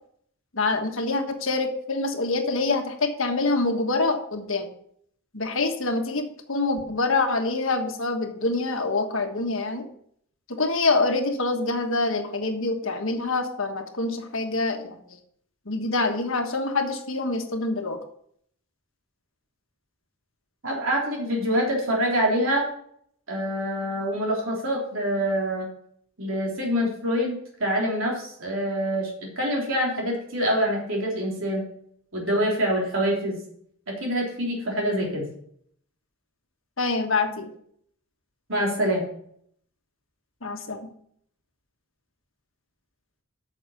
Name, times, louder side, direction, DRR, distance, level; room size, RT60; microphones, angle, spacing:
voice 1, 0.5-4.7 5.3-9.9 10.5-15.0 15.7-18.0 36.8-37.5 40.4-40.9, left 3 dB, 65° left, 4 dB, 1.4 m, -26 dB
voice 2, 20.6-22.7 23.3-25.7 26.2-27.4 27.6-29.1 29.4-31.6 32.1-33.4 33.9-35.3 38.5-39.0, equal, 65° right, -2 dB, 3.6 m, -25 dB
9.3 x 6.5 x 5.8 m, 0.65 s
head